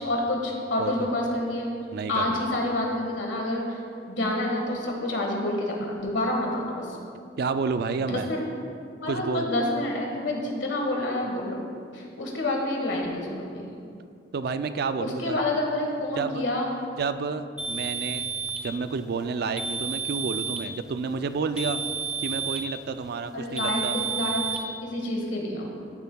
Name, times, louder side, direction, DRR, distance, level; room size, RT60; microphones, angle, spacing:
voice 1, 0.0-1.7 2.1-3.8 4.1-7.0 8.0-8.4 9.0-11.5 11.9-13.7 15.0-16.7 23.3-25.7, left 1 dB, 90° left, 0 dB, 1.5 m, -28 dB
voice 2, 1.9-2.4 7.4-8.3 9.1-9.4 14.3-15.4 16.2-16.4 17.0-18.3 18.6-21.8 22.2-24.0, right 4 dB, 60° right, 10 dB, 0.4 m, -30 dB
sound 1, 17.6-18.7 19.6-20.7 21.6-22.7 23.6-24.6, right 6 dB, 5° right, 0.7 m, -31 dB
13.5 x 7.0 x 2.3 m, 2.3 s
head